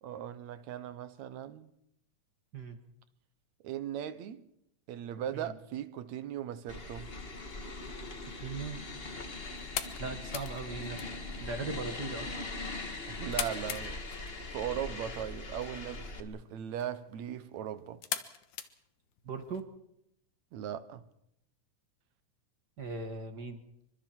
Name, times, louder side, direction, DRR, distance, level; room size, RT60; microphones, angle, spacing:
voice 1, 0.0-1.7 3.6-4.5 4.9-7.1 13.1-14.0 14.5-18.0 20.5-21.0, right 10 dB, 70° right, 2.3 m, -38 dB
sound 1, 6.7-16.2, left 2 dB, 30° left, 1.2 m, -41 dB
sound 2, 8.2-19.6, left 10 dB, 80° left, 2.7 m, -44 dB
voice 2, 8.3-8.8 10.0-11.0 11.4-12.3 19.2-19.7 22.8-23.6, right 4 dB, 40° right, 1.9 m, -38 dB
28.0 x 25.0 x 4.6 m
omnidirectional pair, 3.4 m